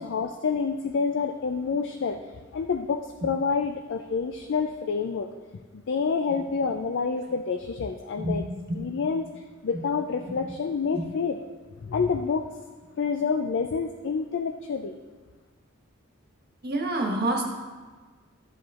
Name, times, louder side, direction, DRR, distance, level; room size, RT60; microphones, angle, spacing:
voice 1, 0.0-2.2 2.5-5.3 5.9-8.4 8.7-11.4 11.8-12.5 13.0-15.0, left 5 dB, 60° left, 6 dB, 0.4 m, -28 dB
voice 2, 8.2-9.1 9.7-9.8 10.9-11.1 16.6-17.5, right 1 dB, 50° right, 1 dB, 1.3 m, -28 dB
13.5 x 7.5 x 2.5 m, 1.4 s
head